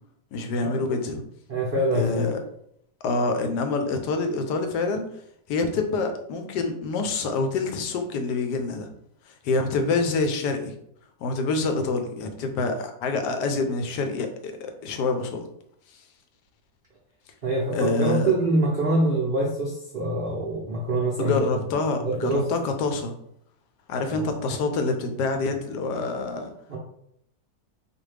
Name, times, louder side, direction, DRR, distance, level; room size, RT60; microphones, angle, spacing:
voice 1, 0.3-1.2 1.9-2.4 3.0-5.1 5.5-8.9 9.3-10.7 11.2-15.4 15.9-16.0 17.7-18.3 21.2-23.1 23.9-26.5, left 3 dB, 75° left, 6 dB, 1.2 m, -26 dB
voice 2, 1.5-2.3 17.4-21.4 22.0-22.5 24.1-24.2 26.7-26.8, right 2 dB, 75° right, -3 dB, 0.5 m, -25 dB
4.1 x 2.7 x 3.2 m, 0.73 s
omnidirectional pair, 1.9 m